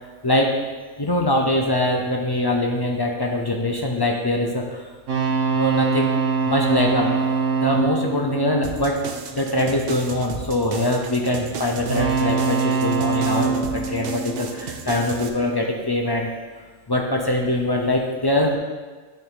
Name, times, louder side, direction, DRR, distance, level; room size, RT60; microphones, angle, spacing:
voice 1, 0.2-0.6 1.0-4.9 5.5-6.1 6.5-7.3 7.6-9.0 9.3-16.3 16.9-18.6, left 1 dB, 40° left, 0 dB, 0.3 m, -23 dB
sound 1, 5.1-9.5 11.8-15.1, right 5 dB, 75° right, 1.3 m, -24 dB
sound 2, 8.6-15.3, right 6 dB, 60° right, 0.7 m, -35 dB
9.3 x 4.0 x 3.8 m, 1.4 s
omnidirectional pair, 1.3 m